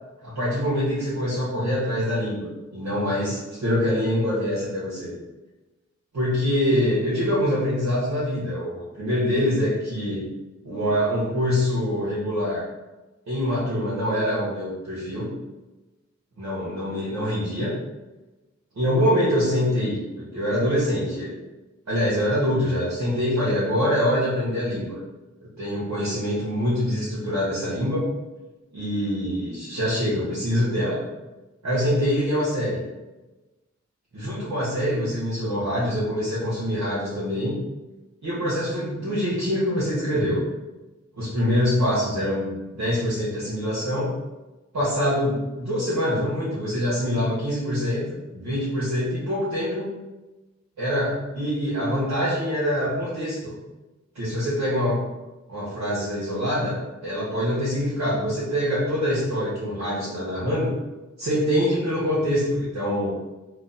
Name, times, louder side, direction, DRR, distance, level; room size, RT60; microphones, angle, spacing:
voice 1, 0.2-5.1 6.1-10.2 10.6-12.6 13.3-15.3 16.4-17.8 18.8-21.3 21.9-25.0 25.4-28.1 28.7-31.0 31.6-32.8 34.1-37.6 38.2-40.4 41.1-44.1 44.7-48.0 48.3-49.9 50.8-53.5 54.1-55.0 55.5-56.8 57.0-60.7 61.2-63.2, equal, 70° right, -10 dB, 1.2 m, -25 dB
3.0 x 2.1 x 4.0 m, 1.1 s
cardioid pair, 60°, 29 cm